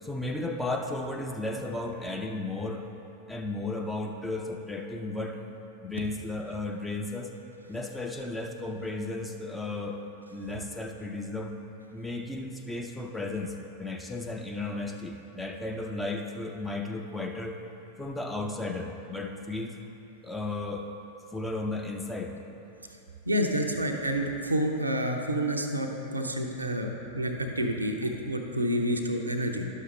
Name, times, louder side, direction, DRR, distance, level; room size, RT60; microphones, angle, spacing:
voice 1, 0.0-2.9 3.3-5.4 5.8-7.3 7.7-10.0 10.3-11.6 11.9-13.5 13.8-17.6 18.0-19.7 20.2-20.9 21.3-22.3, left 2 dB, 5° left, 2 dB, 0.7 m, -34 dB
voice 2, 23.2-29.6, equal, 80° right, 3 dB, 0.7 m, -29 dB
11.0 x 6.6 x 3.3 m, 2.9 s
figure-of-eight pair, 90°, 0 cm